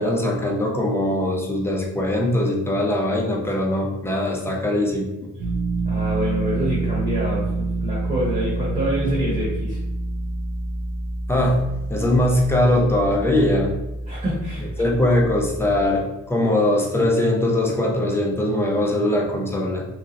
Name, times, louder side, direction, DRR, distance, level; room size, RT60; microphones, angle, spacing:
voice 1, 0.0-5.3 11.3-11.6 11.9-13.7 14.8-19.8, left 1 dB, 10° left, -1 dB, 0.5 m, -21 dB
sound 1, 5.4-15.9, right 3 dB, 75° right, 0.7 m, -27 dB
voice 2, 5.8-9.8 14.1-14.7, equal, 20° right, -6 dB, 0.9 m, -26 dB
3.6 x 3.1 x 2.5 m, 0.95 s
wide cardioid pair, 165°, 33 cm